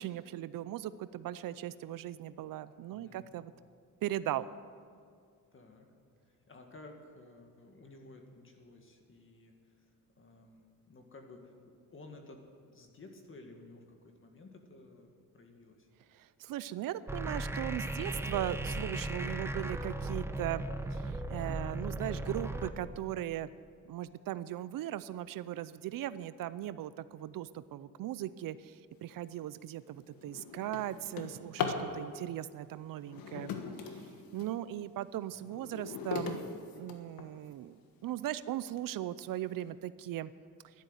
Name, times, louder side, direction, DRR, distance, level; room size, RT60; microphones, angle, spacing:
voice 1, 0.0-3.5 4.0-4.5 16.1-20.6 20.9-23.5 23.9-33.5 34.3-36.4 36.7-40.3, right 13 dB, 75° right, 16 dB, 0.6 m, -38 dB
voice 2, 2.9-3.3 5.5-5.9 6.2-15.9 35.3-35.6, left 2 dB, 35° left, 3 dB, 1.9 m, -54 dB
sound 1, 17.1-22.7, right 1 dB, 5° right, 0.8 m, -37 dB
Drawer open or close, 29.2-29.4 29.9-31.9 33.0-34.6 35.1-37.5 38.2-38.3 38.8-38.9 39.2-39.6, left 6 dB, 90° left, 1.4 m, -39 dB
12.0 x 11.5 x 8.0 m, 2.1 s
cardioid pair, 115°, 34 cm